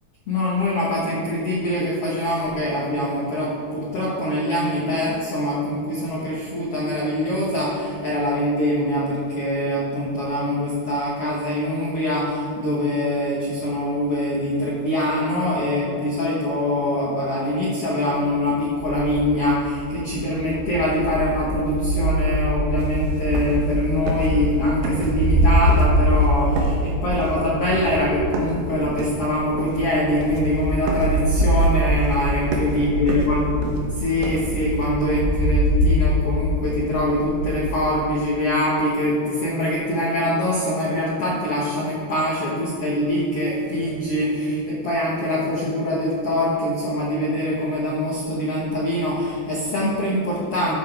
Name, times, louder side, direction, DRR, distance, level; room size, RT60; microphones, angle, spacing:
voice 1, 0.3-33.5 33.9-50.8, left 1 dB, 75° left, -5 dB, 1.3 m, -23 dB
sound 1, 18.6-37.7, equal, 55° right, 3.9 m, -23 dB
sound 2, 22.8-22.9 23.2-23.8 24.1-24.5 24.8-25.4 25.7-26.3 26.6-28.7 29.0-29.9 30.2-30.6 30.9-34.9, right 2 dB, 80° right, 3.1 m, -30 dB
14.0 x 7.3 x 3.5 m, 2.6 s
omnidirectional pair, 4.8 m